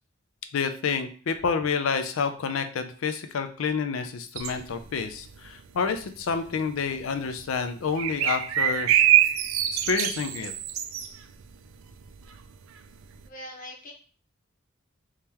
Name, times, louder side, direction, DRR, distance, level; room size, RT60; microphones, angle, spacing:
voice 1, 0.5-8.9 9.7-10.5, left 5 dB, 85° left, 8 dB, 0.4 m, -29 dB
sound 1, 4.4-5.6 5.9-6.3 6.7-6.8 7.0-7.4 8.0-12.4 12.6-12.7 13.0-13.1, right 10 dB, 90° right, 0.4 m, -24 dB
voice 2, 13.2-13.9, left 1 dB, 45° left, -1 dB, 1.0 m, -41 dB
3.6 x 3.2 x 2.9 m, 0.41 s
head